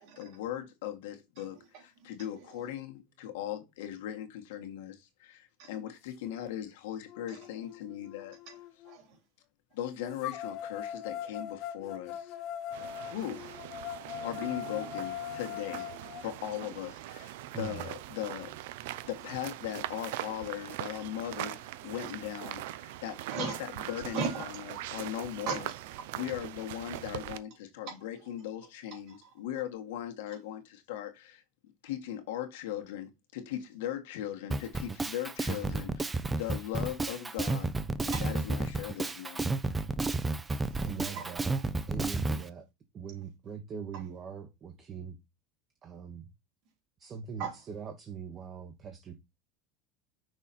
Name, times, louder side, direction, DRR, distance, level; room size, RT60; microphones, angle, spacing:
voice 1, 0.1-8.4 9.7-12.3 13.0-13.6 14.2-15.9 16.2-18.5 19.0-25.7 26.1-31.4 31.8-37.7 38.0-39.6, left 11 dB, 85° left, 1.7 m, -39 dB
voice 2, 1.7-2.1 2.4-2.5 5.6-5.7 7.3-7.4 8.5-8.6 8.8-9.2 23.3-23.6 24.1-24.5 25.4-26.1 27.9-28.0 28.9-29.2 38.1-38.3 40.5-41.7 42.3-42.4 43.9-44.0 47.4-47.6, right 5 dB, 50° right, 3.4 m, -38 dB
sound 1, 6.4-6.5 7.1-9.0 10.2-16.2, left 10 dB, 45° left, 0.5 m, -41 dB
sound 2, 12.7-27.4, right 15 dB, 80° right, 0.5 m, -42 dB
voice 3, 17.5-17.9 40.8-41.5 41.9-42.6 42.9-45.1 45.8-46.3 47.0-49.2, right 7 dB, 30° right, 1.0 m, -41 dB
Drum kit, 34.5-42.4, right 3 dB, 10° right, 0.5 m, -31 dB
6.1 x 4.1 x 4.2 m
supercardioid pair, 160°, 0 cm